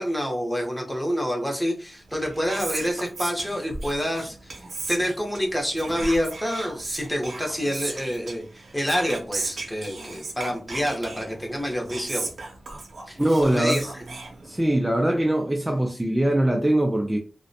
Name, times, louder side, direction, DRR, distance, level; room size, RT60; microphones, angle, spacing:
voice 1, 0.0-4.6 4.9-12.3 13.1-13.9, equal, 10° left, 0.7 m, -27 dB
Whispering, 2.0-14.9, right 3 dB, 80° right, 0.6 m, -36 dB
voice 2, 13.2-13.8 14.4-17.2, right 1 dB, 10° right, 0.3 m, -22 dB
2.5 x 2.1 x 2.6 m
wide cardioid pair, 115°, 0 cm